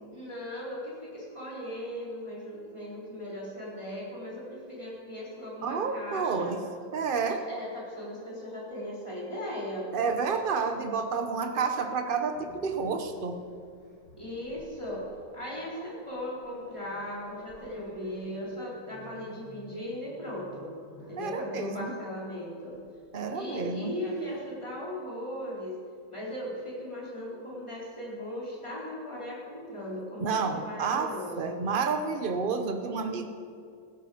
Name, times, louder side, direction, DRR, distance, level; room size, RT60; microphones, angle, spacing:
voice 1, 0.1-6.5 7.3-9.9 14.2-15.0 15.3-20.7 21.1-22.8 23.3-25.7 26.1-31.6, left 1 dB, 15° left, -6 dB, 4.1 m, -38 dB
voice 2, 5.6-6.6 6.9-7.4 9.9-13.4 21.2-21.9 23.1-23.9 30.2-33.2, right 5 dB, 70° right, 6 dB, 0.5 m, -30 dB
Growling, 12.3-21.3 22.7-22.9 23.3-24.4, equal, 55° left, 4.4 m, -52 dB
16.0 x 13.0 x 5.1 m, 2.3 s
omnidirectional pair, 2.3 m